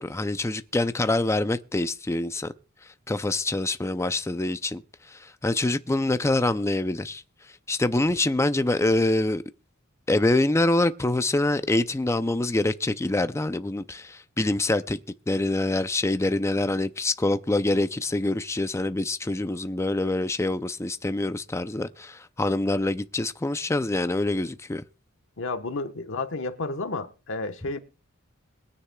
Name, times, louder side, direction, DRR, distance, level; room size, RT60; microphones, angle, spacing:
voice 1, 0.0-2.5 3.1-4.8 5.4-7.2 7.7-9.4 10.1-15.0 15.3-24.8, left 2 dB, 15° left, 0.5 m, -25 dB
voice 2, 25.4-27.8, left 3 dB, 65° left, 1.2 m, -31 dB
21.5 x 9.8 x 2.3 m
head